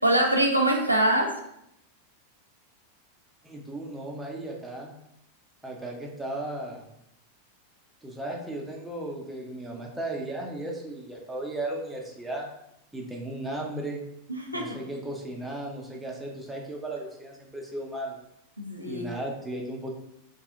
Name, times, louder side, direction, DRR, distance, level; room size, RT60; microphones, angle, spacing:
voice 1, 0.0-1.3 14.3-14.8 18.6-19.1, right 1 dB, 90° right, 0 dB, 0.5 m, -24 dB
voice 2, 3.4-4.9 5.6-6.9 8.0-12.5 12.9-14.0 14.5-18.2 18.8-19.9, right 1 dB, 5° right, -1 dB, 0.7 m, -35 dB
3.5 x 2.3 x 3.7 m, 0.78 s
figure-of-eight pair, 90°, 0 cm